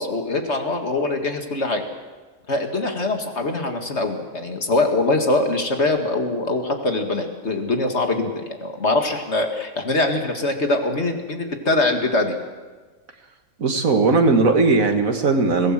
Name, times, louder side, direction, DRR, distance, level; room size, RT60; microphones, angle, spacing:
voice 1, 0.0-1.9 2.5-12.4, left 2 dB, 55° left, 4 dB, 2.2 m, -23 dB
voice 2, 13.6-15.7, right 3 dB, 75° right, 6 dB, 2.2 m, -18 dB
22.5 x 17.0 x 7.6 m, 1.3 s
omnidirectional pair, 1.4 m